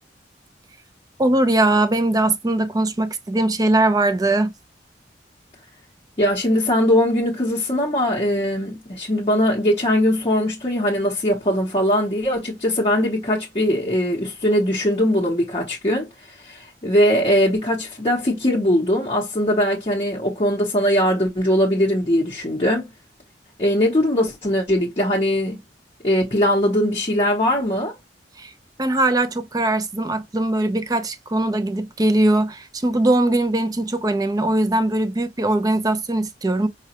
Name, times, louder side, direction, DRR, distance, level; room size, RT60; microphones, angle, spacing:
voice 1, 1.2-4.5 28.4-28.5 28.8-36.7, right 2 dB, 20° right, 0.4 m, -20 dB
voice 2, 6.2-22.9 23.6-25.6 26.0-27.9, equal, 30° left, 0.7 m, -20 dB
4.8 x 2.2 x 2.8 m
head